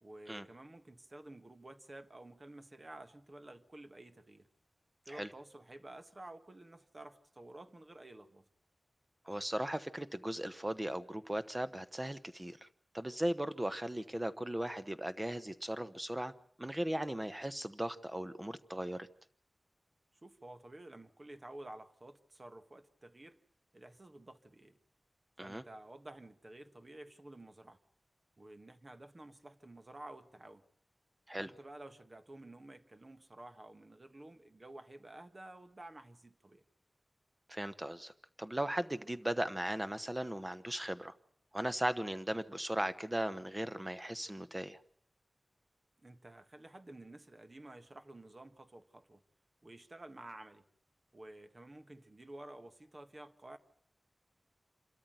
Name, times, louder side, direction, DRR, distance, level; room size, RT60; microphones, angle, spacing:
voice 1, 0.0-4.5 5.1-8.4 20.2-23.4 23.7-24.8 25.4-27.8 28.4-30.6 31.4-36.6 46.0-49.2 49.6-50.6 51.1-53.6, right 1 dB, 40° right, 1.5 m, -52 dB
voice 2, 9.2-12.7 12.9-16.3 16.6-19.1 25.4-25.6 31.3-31.5 37.5-38.1 38.4-41.1 41.5-44.8, right 1 dB, 20° right, 1.1 m, -37 dB
26.5 x 13.5 x 9.3 m
wide cardioid pair, 90°, 0 cm